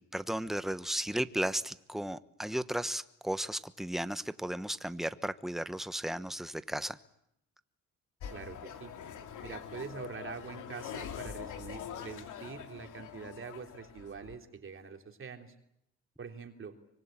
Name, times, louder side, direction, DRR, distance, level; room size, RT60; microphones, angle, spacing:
voice 1, 0.0-7.0, right 1 dB, ahead, 13 dB, 1.1 m, -35 dB
sound 1, 8.2-14.4, left 8 dB, 80° left, 2.8 m, -44 dB
voice 2, 8.3-8.9 9.4-15.5 16.2-16.7, right 5 dB, 45° right, 5 dB, 3.3 m, -45 dB
25.0 x 23.0 x 9.0 m, 0.79 s
cardioid pair, 90°, 30 cm